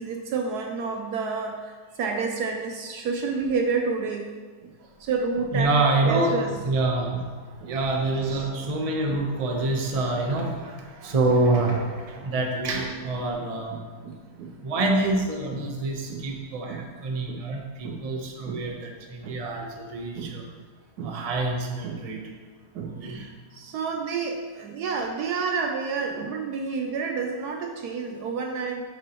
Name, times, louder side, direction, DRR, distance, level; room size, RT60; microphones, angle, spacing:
voice 1, 0.0-4.3 4.6-4.7 5.0-6.6 7.6-7.7 8.2-8.7 9.9-10.0 13.7-14.6 15.5-15.7 16.1-16.3 16.7-16.9 17.3-17.5 17.8-18.1 18.5-18.8 19.2-19.4 20.2-20.5 21.0-21.3 21.8-22.1 22.7-28.8, right 5 dB, 70° right, 4 dB, 1.1 m, -30 dB
voice 2, 5.5-13.8 14.6-20.5 21.0-22.2 23.0-23.3, right 2 dB, 25° right, 1 dB, 0.8 m, -26 dB
9.0 x 8.0 x 3.1 m, 1.5 s
omnidirectional pair, 1.9 m